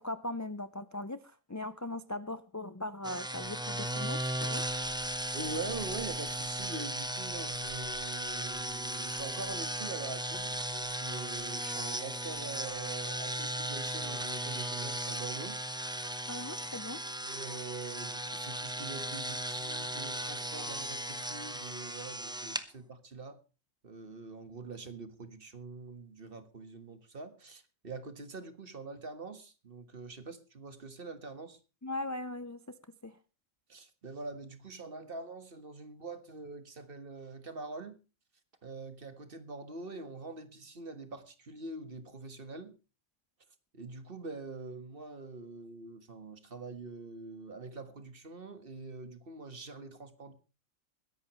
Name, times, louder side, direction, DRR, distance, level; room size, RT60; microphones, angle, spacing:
voice 1, 0.0-4.6 16.3-17.0 31.8-33.2, left 1 dB, 25° left, 0.4 m, -39 dB
sound 1, 3.0-22.6, right 1 dB, 5° right, 0.7 m, -36 dB
voice 2, 5.3-15.6 17.2-23.4 23.8-31.6 33.7-38.0 38.6-42.8 43.7-50.3, right 3 dB, 45° right, 1.7 m, -44 dB
21.5 x 11.0 x 3.1 m
omnidirectional pair, 1.4 m